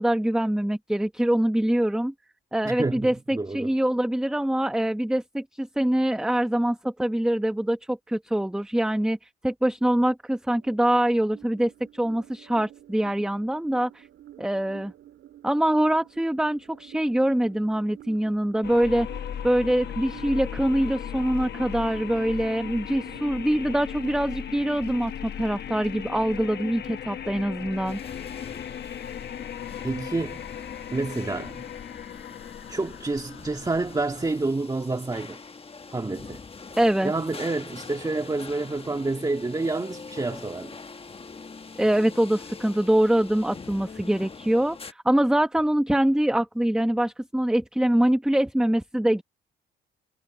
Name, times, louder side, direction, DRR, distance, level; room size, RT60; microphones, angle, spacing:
voice 1, 0.0-2.1 2.5-14.1 14.4-14.9 15.4-19.1 19.4-28.0 36.8-37.1 41.8-49.2, right 1 dB, 5° right, 1.1 m, -24 dB
voice 2, 2.6-3.7 29.8-30.5 30.9-31.6 32.7-35.4 35.9-36.4 37.0-40.8, right 3 dB, 20° right, 1.9 m, -28 dB
sound 1, 10.5-25.5, right 12 dB, 75° right, 2.9 m, -50 dB
sound 2, 18.6-34.5, left 9 dB, 55° left, 1.1 m, -37 dB
sound 3, 27.8-44.9, left 4 dB, 30° left, 1.3 m, -44 dB
cardioid pair, 90°, 20 cm